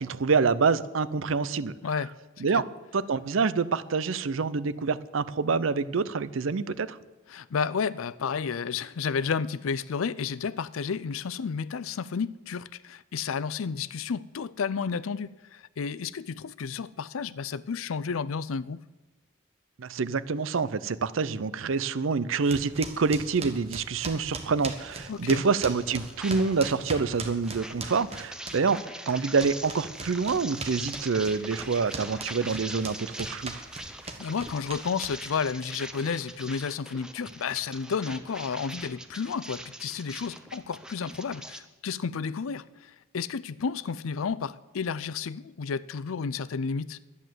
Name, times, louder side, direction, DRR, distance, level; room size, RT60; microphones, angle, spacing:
voice 1, 0.0-1.7 2.4-2.6 2.9-7.0 19.8-28.8 29.1-33.5, right 4 dB, 75° right, 0.6 m, -26 dB
voice 2, 7.3-18.8 25.1-25.4 34.2-47.0, left 5 dB, 85° left, 0.5 m, -32 dB
sound 1, 22.5-28.8 29.1-35.4, right 3 dB, 30° right, 1.4 m, -39 dB
sound 2, 24.8-26.8 27.1-41.6, right 1 dB, 5° right, 0.6 m, -42 dB
11.5 x 9.6 x 7.7 m
head